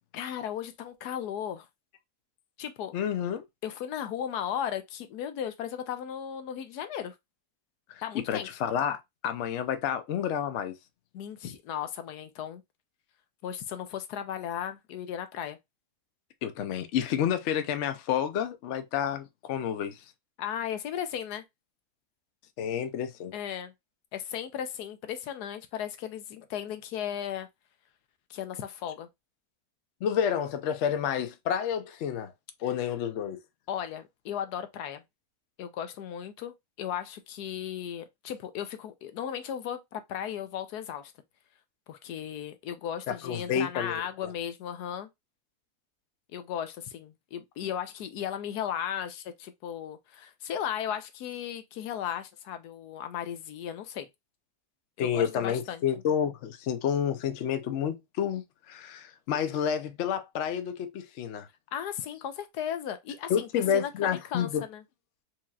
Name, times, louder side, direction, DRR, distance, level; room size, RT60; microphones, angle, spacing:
voice 1, 0.1-1.7 2.6-2.9 3.6-7.1 8.0-8.5 11.1-12.6 13.4-15.6 20.4-21.4 23.3-23.7 24.1-27.5 28.3-29.1 33.7-35.0 35.6-41.1 41.9-45.1 46.3-54.1 55.0-55.8 61.7-64.8, left 9 dB, 80° left, 1.2 m, -36 dB
voice 2, 2.9-3.4 8.1-10.7 16.4-20.0 22.6-23.3 30.0-32.3 32.6-33.4 43.1-44.3 55.0-61.5 63.3-64.6, left 8 dB, 65° left, 0.7 m, -30 dB
4.6 x 2.9 x 2.3 m
omnidirectional pair, 1.7 m